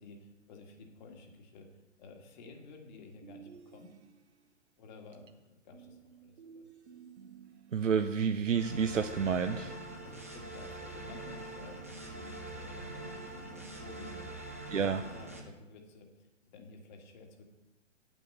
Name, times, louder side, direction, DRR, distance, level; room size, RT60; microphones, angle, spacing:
voice 1, 0.0-1.7 2.0-4.0 4.8-6.7 10.0-14.8 15.1-17.4, left 3 dB, 35° left, 3 dB, 1.7 m, -53 dB
sound 1, 3.2-4.5 5.7-7.9, right 7 dB, 60° right, 1.1 m, -54 dB
voice 2, 7.7-9.7 14.7-15.0, right 6 dB, 75° right, 8 dB, 0.6 m, -29 dB
sound 2, 8.5-15.4, right 2 dB, 15° right, 0.3 m, -44 dB
9.2 x 6.1 x 6.6 m, 1.0 s
figure-of-eight pair, 120°, 38 cm